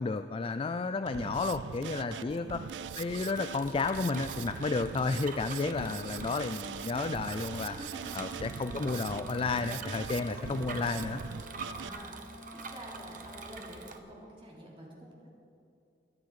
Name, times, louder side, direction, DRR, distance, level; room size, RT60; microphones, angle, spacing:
voice 1, 0.0-2.6 3.0-7.7 8.1-11.2, left 4 dB, 30° left, 9 dB, 0.3 m, -32 dB
Drum kit, 1.1-11.9, right 7 dB, 75° right, 0.4 m, -42 dB
Bicycle, 2.2-14.0, right 4 dB, 50° right, 1.1 m, -46 dB
voice 2, 5.4-6.0 7.6-8.2 11.5-15.3, right 1 dB, 30° right, -4 dB, 3.5 m, -48 dB
Wind instrument woodwind instrument, 7.9-14.0, left 1 dB, 5° left, 1.4 m, -50 dB
22.5 x 9.4 x 4.8 m, 2.6 s
head